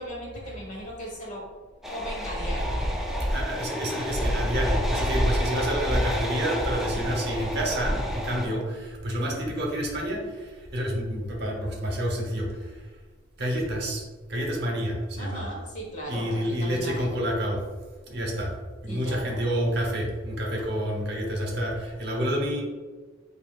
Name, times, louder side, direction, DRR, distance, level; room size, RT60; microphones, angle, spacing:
voice 1, 0.0-1.5 1.9-2.8 15.2-17.1 18.9-19.4, equal, 40° left, -2 dB, 1.2 m, -37 dB
sound 1, 1.8-8.5, equal, ahead, 0.5 m, -28 dB
voice 2, 3.3-12.8 13.4-14.0 14.3-15.4 16.1-17.6 18.1-18.5 18.8-22.6, equal, 55° right, 0 dB, 1.0 m, -29 dB
8.0 x 2.7 x 2.4 m, 1.3 s
head